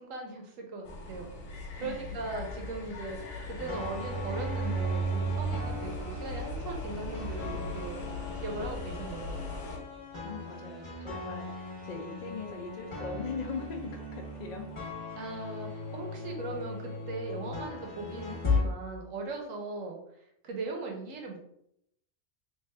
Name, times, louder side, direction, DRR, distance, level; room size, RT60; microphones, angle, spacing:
voice 1, 0.0-9.6 15.2-20.0 20.4-21.4, right 3 dB, 75° right, 2 dB, 1.1 m, -39 dB
sound 1, 0.8-9.8, left 3 dB, 90° left, 1.2 m, -40 dB
sound 2, 3.6-18.6, left 1 dB, 40° left, 1.1 m, -36 dB
voice 2, 10.2-11.5 11.8-14.6, left 4 dB, 55° left, 1 dB, 0.4 m, -40 dB
3.4 x 2.5 x 3.2 m, 0.75 s
omnidirectional pair, 1.4 m